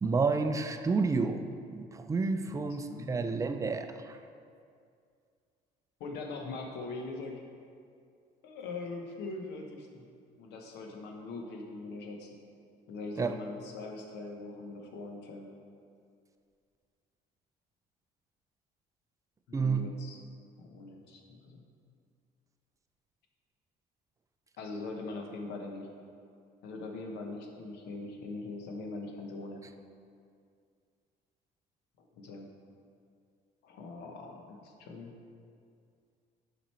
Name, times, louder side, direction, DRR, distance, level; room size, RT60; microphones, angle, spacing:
voice 1, 0.0-4.2 13.2-13.4 19.5-19.9, right 4 dB, 20° right, 7 dB, 0.4 m, -30 dB
voice 2, 2.5-3.4 6.0-7.4 8.4-10.1 10.4-12.3 12.9-15.5 19.5-20.2 20.6-21.6 24.6-25.9 26.6-29.6 32.1-32.5 33.6-35.1, left 3 dB, 80° left, 2 dB, 1.0 m, -42 dB
7.4 x 5.1 x 4.3 m, 2.3 s
cardioid pair, 110°, 17 cm